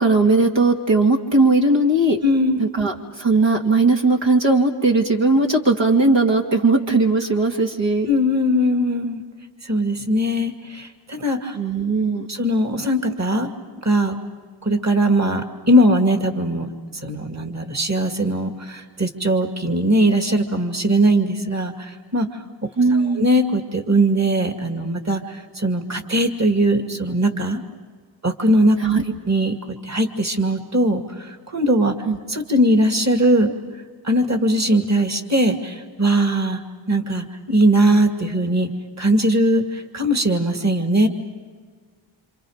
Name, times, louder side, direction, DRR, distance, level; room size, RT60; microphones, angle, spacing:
voice 1, 0.0-2.2 2.6-8.1 11.5-12.3 22.8-23.2 28.8-29.0 32.0-32.2, right 3 dB, 65° right, 0 dB, 2.3 m, -18 dB
voice 2, 2.2-2.6 8.1-9.2 9.6-11.6 12.3-13.5 13.8-14.2 14.6-16.7 17.0-22.3 22.9-27.6 28.2-28.8 29.3-29.5 29.8-32.0 32.3-33.5 34.0-36.6 36.9-38.7 39.0-41.1, right 1 dB, 35° right, 4 dB, 2.4 m, -20 dB
28.5 x 27.5 x 5.1 m, 1.5 s
wide cardioid pair, 85°, 48 cm